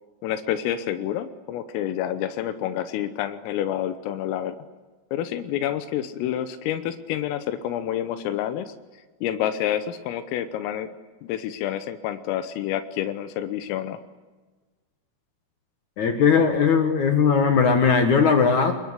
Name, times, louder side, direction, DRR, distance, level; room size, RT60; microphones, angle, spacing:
voice 1, 0.2-4.6 5.1-8.7 9.2-10.9 11.2-14.0, left 11 dB, 85° left, 11 dB, 3.7 m, -28 dB
voice 2, 16.0-18.7, left 6 dB, 65° left, 6 dB, 1.9 m, -19 dB
26.0 x 21.0 x 9.8 m, 1.3 s
omnidirectional pair, 5.9 m